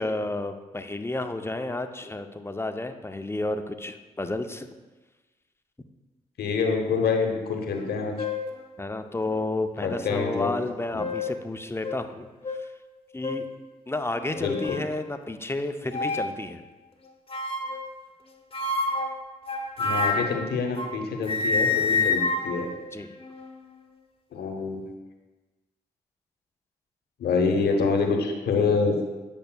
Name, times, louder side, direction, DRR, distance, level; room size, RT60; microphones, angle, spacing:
voice 1, 0.0-4.7 8.8-12.3 13.1-13.4 13.9-16.6 22.9-23.1, left 2 dB, 15° left, 8 dB, 0.5 m, -31 dB
voice 2, 6.4-8.1 9.8-10.5 10.9-11.1 14.4-14.8 19.8-22.7 24.3-24.8 27.2-29.0, left 5 dB, 75° left, 3 dB, 0.9 m, -26 dB
sound 1, 7.7-7.9 8.2-8.6 9.3-9.4 10.7-11.4 11.8-12.0 12.4-12.6 13.2-13.5 14.2-14.9 15.9-16.4 17.3-17.9 18.5-21.0 21.2-23.6, left 3 dB, 35° left, 0.9 m, -28 dB
8.6 x 5.2 x 2.2 m, 1.2 s
supercardioid pair, 45°, 17 cm